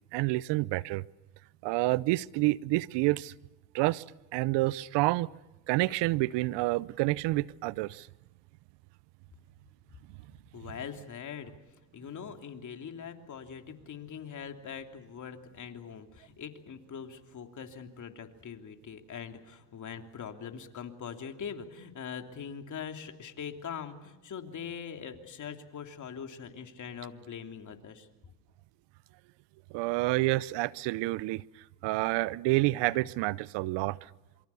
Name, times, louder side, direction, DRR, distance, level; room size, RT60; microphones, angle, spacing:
voice 1, 0.1-1.0 1.6-3.3 3.7-4.0 4.3-5.3 5.7-8.1 29.7-31.4 31.8-34.0, right 20 dB, 70° right, 21 dB, 0.8 m, -28 dB
voice 2, 10.5-11.5 11.9-28.1, left 7 dB, 40° left, 5 dB, 3.1 m, -42 dB
27.0 x 24.0 x 7.0 m, 1.0 s
supercardioid pair, 85°, 44 cm